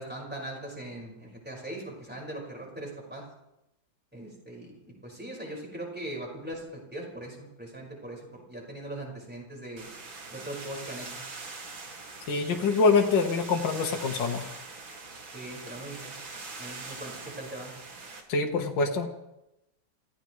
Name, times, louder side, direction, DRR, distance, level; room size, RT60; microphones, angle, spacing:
voice 1, 0.0-3.2 4.1-9.8 10.3-11.2 15.3-16.1 16.6-17.7, right 1 dB, 5° right, -2 dB, 5.0 m, -40 dB
sound 1, 9.8-18.2, right 3 dB, 80° right, 3.0 m, -43 dB
voice 2, 12.3-14.5 18.3-19.1, left 4 dB, 70° left, 2 dB, 2.0 m, -25 dB
28.5 x 16.0 x 3.2 m, 0.91 s
omnidirectional pair, 2.1 m